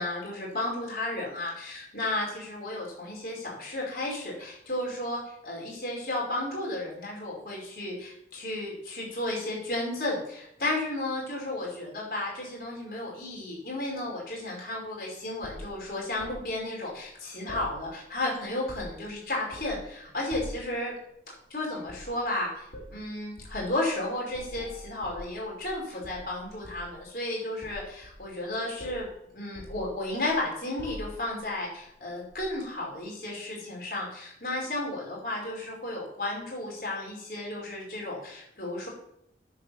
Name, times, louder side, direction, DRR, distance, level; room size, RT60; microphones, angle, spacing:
voice 1, 0.0-20.9 21.5-29.1 29.3-38.9, left 1 dB, 55° left, -2 dB, 5.0 m, -33 dB
sound 1, 15.4-16.4 17.5-18.2 18.5-19.1 19.5-19.9 20.3-20.7 21.8-22.1 22.7-22.9 23.4-23.6 24.3-25.7 26.0-27.0 27.6-28.5 28.8-29.1 29.5-30.4 30.8-31.4 32.3-32.5, equal, 70° left, 3.8 m, -44 dB
9.3 x 7.7 x 7.3 m, 0.73 s
head